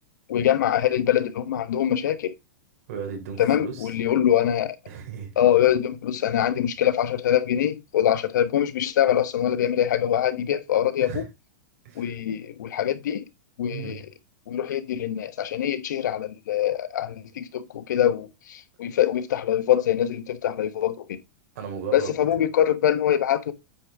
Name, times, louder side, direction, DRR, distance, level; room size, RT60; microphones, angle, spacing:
voice 1, 0.3-2.3 3.4-4.8 5.4-11.3 12.0-13.2 13.6-14.0 14.5-21.2 21.9-23.5, left 10 dB, 75° left, 1.1 m, -23 dB
voice 2, 2.9-3.9 4.9-5.3 11.0-11.2 11.9-12.4 13.7-14.0 21.6-22.1, right 7 dB, 55° right, 3.4 m, -35 dB
8.5 x 5.0 x 3.5 m
supercardioid pair, 160°, 10 cm